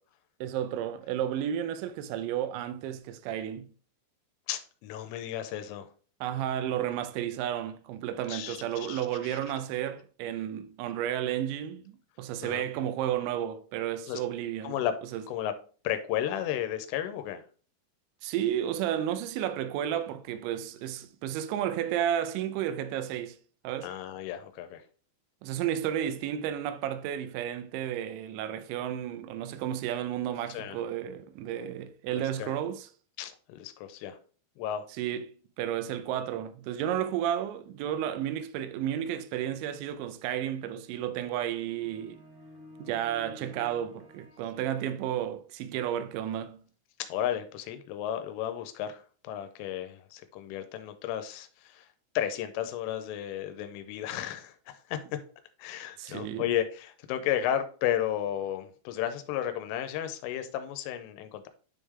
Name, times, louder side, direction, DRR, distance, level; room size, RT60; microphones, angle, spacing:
voice 1, 0.4-3.7 6.2-14.8 15.1-15.3 18.2-23.4 23.6-23.9 25.4-32.9 35.0-42.2 42.8-46.6 56.0-56.5, right 10 dB, 80° right, 2.8 m, -32 dB
voice 2, 4.5-5.9 8.3-8.6 8.9-9.4 12.4-12.6 14.1-14.2 14.6-14.9 15.3-15.5 15.8-17.4 23.8-24.8 30.5-30.8 32.1-32.6 33.2-34.2 34.6-34.9 47.1-51.9 52.2-55.0 55.6-61.5, left 11 dB, 90° left, 3.2 m, -33 dB
sound 1, 41.3-45.3, left 1 dB, 20° right, 1.6 m, -52 dB
10.0 x 3.7 x 3.2 m
omnidirectional pair, 5.7 m